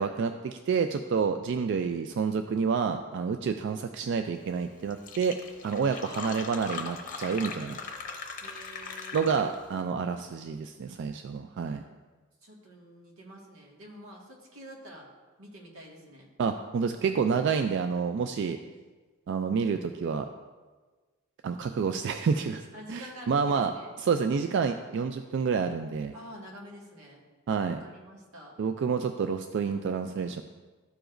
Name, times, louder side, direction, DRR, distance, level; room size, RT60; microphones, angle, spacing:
voice 1, 0.0-5.4 5.6-7.8 9.1-11.8 16.4-18.6 19.3-20.3 21.4-23.7 24.0-26.1 27.5-27.8 28.6-30.4, right 5 dB, 55° right, 7 dB, 0.3 m, -29 dB
Fill (with liquid), 4.6-4.7 4.9-9.7, left 5 dB, 40° left, 0.7 m, -40 dB
voice 2, 6.0-7.1 8.4-9.5 12.4-15.1 15.4-16.3 22.7-23.9 26.1-27.3 27.6-28.6, equal, 90° right, -2 dB, 1.7 m, -48 dB
12.5 x 4.9 x 2.5 m, 1.3 s
head